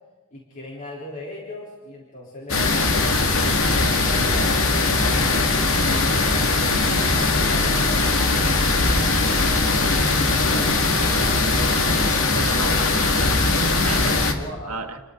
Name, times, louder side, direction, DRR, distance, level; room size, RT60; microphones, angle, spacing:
voice 1, 0.3-5.5 6.0-8.4 10.5-10.7 11.2-11.5 14.3-14.8, left 1 dB, 35° left, 3.8 m, -39 dB
sound 1, 2.5-14.3, left 3 dB, 65° left, 2.3 m, -20 dB
voice 2, 12.1-13.3 13.6-14.3 14.7-15.0, right 3 dB, 80° right, 1.7 m, -34 dB
29.5 x 22.5 x 3.9 m
head